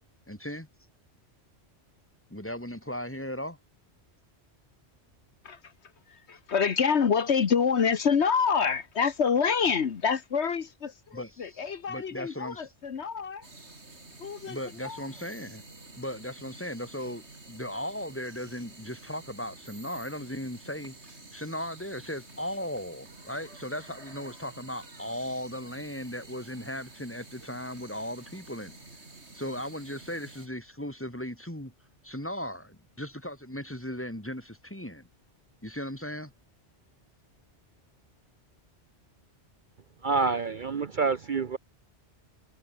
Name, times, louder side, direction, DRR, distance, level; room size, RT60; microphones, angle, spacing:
voice 1, 0.3-0.7 2.3-3.6 11.1-11.6 11.9-12.7 14.5-15.6 16.0-21.0 21.3-28.8 29.3-31.7 32.0-35.1 35.6-36.3, equal, 10° left, 4.0 m, -37 dB
voice 2, 6.1-13.5 14.2-14.6 14.8-15.0, left 6 dB, 70° left, 1.4 m, -27 dB
sound 1, 13.4-30.5, right 2 dB, 70° right, 4.1 m, -50 dB
voice 3, 40.0-41.6, right 4 dB, 45° right, 0.9 m, -27 dB
omnidirectional pair, 1.2 m